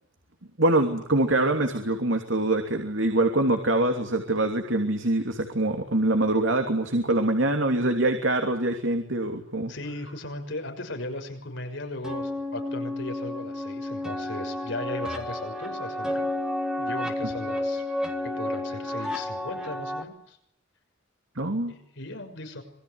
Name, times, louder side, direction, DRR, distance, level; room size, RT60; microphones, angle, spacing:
voice 1, 0.6-9.7 21.4-21.7, right 2 dB, 70° right, 5 dB, 3.0 m, -24 dB
voice 2, 9.7-16.3 16.8-17.8 18.2-20.4 21.7-22.6, left 2 dB, 65° left, 5 dB, 6.3 m, -37 dB
sound 1, 12.0-20.0, left 1 dB, 5° right, 3.5 m, -31 dB
26.5 x 23.0 x 9.7 m, 0.72 s
head